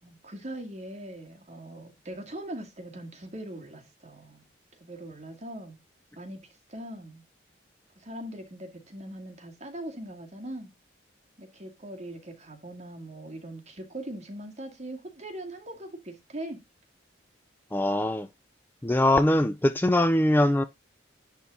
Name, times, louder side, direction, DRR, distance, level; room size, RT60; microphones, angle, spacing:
voice 1, 0.0-4.4 4.8-5.8 6.2-6.4 6.7-7.2 8.0-10.7 11.4-16.6, right 1 dB, 35° right, 2.1 m, -41 dB
voice 2, 17.7-18.3 18.8-20.6, left 1 dB, 10° left, 0.4 m, -22 dB
10.5 x 3.6 x 4.0 m
head